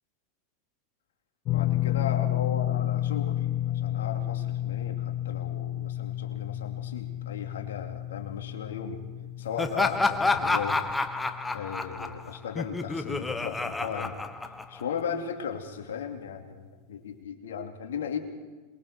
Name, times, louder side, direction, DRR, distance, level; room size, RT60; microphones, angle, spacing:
sound 1, 1.4-13.7 13.9-14.2 15.9-16.0, left 13 dB, 45° left, 1.3 m, -32 dB
voice 1, 1.5-9.1 9.4-11.1 11.5-14.2 14.7-18.2, left 7 dB, 80° left, 3 dB, 2.6 m, -36 dB
Laughter, 9.6-15.0, left 3 dB, 10° left, 1.2 m, -29 dB
28.0 x 22.5 x 4.6 m, 1.3 s
hypercardioid pair, 100°, 0 cm